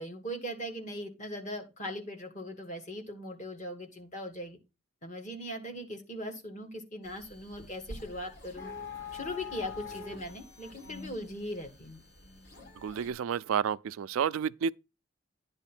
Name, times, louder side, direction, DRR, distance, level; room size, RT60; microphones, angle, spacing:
voice 1, 0.0-4.6 5.0-8.7 9.1-12.0, equal, 35° left, 1.6 m, -39 dB
sound 1, 7.0-13.1, left 4 dB, 55° left, 3.1 m, -45 dB
voice 2, 12.8-14.7, right 7 dB, 80° right, 0.3 m, -30 dB
9.8 x 3.6 x 5.9 m
head